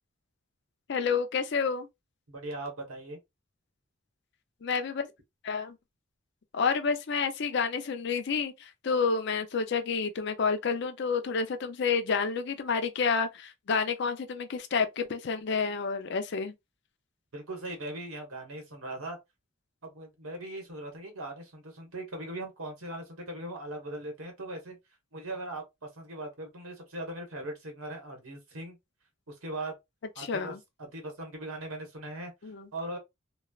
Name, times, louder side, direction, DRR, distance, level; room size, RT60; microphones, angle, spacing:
voice 1, 0.9-1.9 4.6-5.1 5.4-5.8 6.5-16.5 30.2-30.6 32.4-32.7, left 5 dB, 55° left, 0.5 m, -29 dB
voice 2, 2.3-3.2 17.3-19.2 19.8-24.8 25.1-28.8 29.3-29.7 30.2-32.3 32.7-33.0, right 1 dB, 90° right, 1.1 m, -39 dB
3.0 x 2.0 x 2.3 m
head